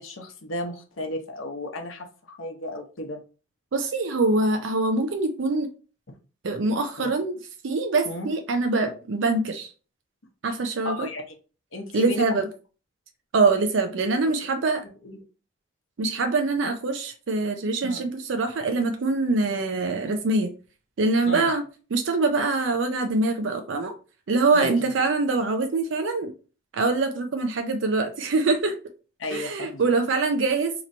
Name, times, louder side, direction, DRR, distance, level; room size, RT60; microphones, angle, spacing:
voice 1, 0.0-3.2 7.0-7.1 8.0-8.3 10.8-11.4 11.7-12.4 14.2-14.3 15.0-15.2 17.8-18.1 21.3-21.5 24.5-24.7 29.2-29.8, left 1 dB, 80° left, 0.8 m, -34 dB
voice 2, 3.7-5.7 6.4-7.4 7.6-9.7 10.4-11.1 11.9-12.5 13.3-14.8 16.0-20.5 21.0-21.6 21.9-23.9 24.3-26.3 26.7-28.7 29.3-30.8, right 3 dB, 70° right, 0.4 m, -24 dB
2.9 x 2.6 x 4.2 m
head